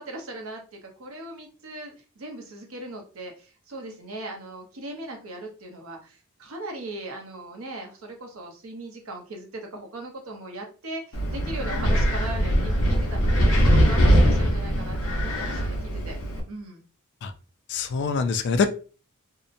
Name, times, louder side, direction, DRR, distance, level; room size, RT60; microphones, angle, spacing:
voice 1, 0.0-15.8 16.0-16.2 16.5-16.8, right 2 dB, 70° right, 2 dB, 0.8 m, -38 dB
Wind, 11.1-16.4, equal, 70° left, 0.8 m, -21 dB
voice 2, 17.7-18.7, left 5 dB, 55° left, 10 dB, 0.3 m, -24 dB
2.8 x 2.1 x 2.5 m, 0.37 s
head